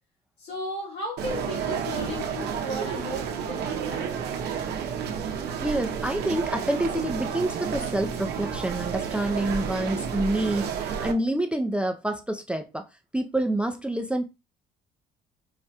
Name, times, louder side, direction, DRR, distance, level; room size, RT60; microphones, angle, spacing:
voice 1, 0.4-4.1, left 1 dB, 80° left, 2.1 m, -35 dB
sound 1, 1.2-11.1, right 7 dB, 75° right, 0.6 m, -31 dB
voice 2, 5.6-12.9 13.1-14.3, right 1 dB, 5° right, 0.3 m, -27 dB
4.7 x 2.1 x 2.7 m
cardioid pair, 110°, 17 cm